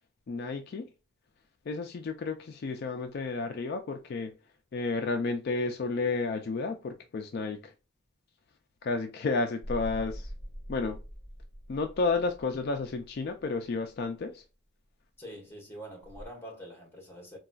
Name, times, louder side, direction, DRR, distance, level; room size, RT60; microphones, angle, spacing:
voice 1, 0.3-0.9 1.7-4.3 4.7-7.7 8.8-10.3 10.7-11.0 11.7-14.4, left 3 dB, 50° left, 0.3 m, -31 dB
sound 1, 9.6-14.1 16.0-16.3, equal, 35° right, 1.6 m, -43 dB
voice 2, 15.2-17.4, equal, 10° left, 1.1 m, -45 dB
4.0 x 2.3 x 2.3 m
head